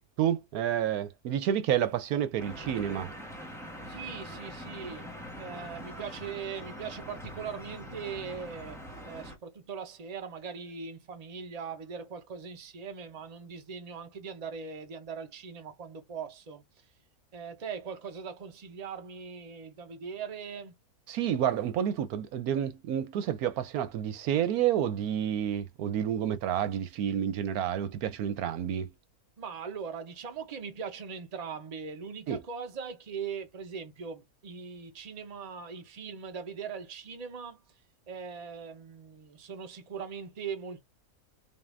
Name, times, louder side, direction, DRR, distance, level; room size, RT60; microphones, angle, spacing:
voice 1, 0.0-3.1 21.1-28.9 32.3-32.4, right 10 dB, 80° right, 1.1 m, -29 dB
sound 1, 2.4-9.4, equal, ahead, 1.1 m, -43 dB
voice 2, 3.9-5.1 5.4-8.8 9.0-16.8 17.3-20.7 29.4-37.6 38.1-40.8, right 6 dB, 30° right, 0.8 m, -40 dB
5.3 x 2.5 x 2.6 m
omnidirectional pair, 1.6 m